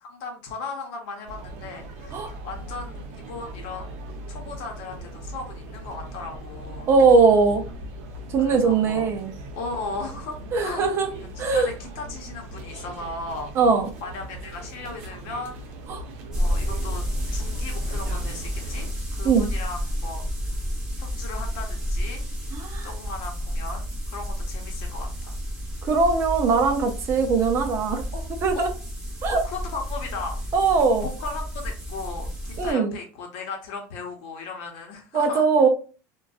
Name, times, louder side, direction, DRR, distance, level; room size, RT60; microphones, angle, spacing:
voice 1, 0.0-6.9 8.4-9.1 9.5-10.4 10.6-13.5 14.0-15.7 16.4-17.0 17.3-20.7 21.0-22.2 22.8-25.4 28.1-28.2 28.5-28.7 29.3-30.4 31.0-35.5, left 3 dB, 60° left, 3 dB, 0.8 m, -36 dB
sound 1, 1.2-18.9, right 1 dB, 75° right, 0.6 m, -39 dB
voice 2, 6.9-7.6 8.3-9.3 10.5-11.1 11.4-11.7 13.6-13.9 15.9-16.0 19.2-19.5 22.5-22.9 25.8-28.0 28.4-28.7 29.2-29.4 30.5-31.1 32.6-33.0 35.1-35.7, right 4 dB, 35° right, 5 dB, 0.4 m, -20 dB
sound 2, 16.3-32.7, equal, 10° right, 0.7 m, -30 dB
2.5 x 2.2 x 2.3 m, 0.36 s
cardioid pair, 160°, 8 cm